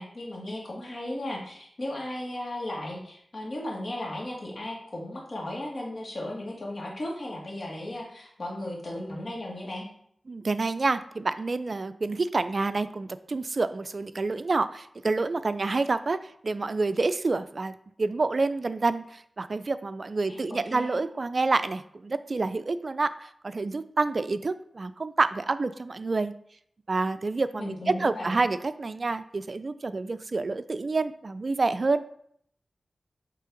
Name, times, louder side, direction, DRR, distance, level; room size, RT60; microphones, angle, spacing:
voice 1, 0.0-9.9 20.3-21.0 27.6-28.4, left 1 dB, 55° left, -2 dB, 2.0 m, -36 dB
voice 2, 10.3-26.3 26.9-32.0, right 3 dB, 55° right, 13 dB, 0.3 m, -28 dB
8.3 x 3.3 x 3.8 m, 0.67 s
cardioid pair, 60°, 0 cm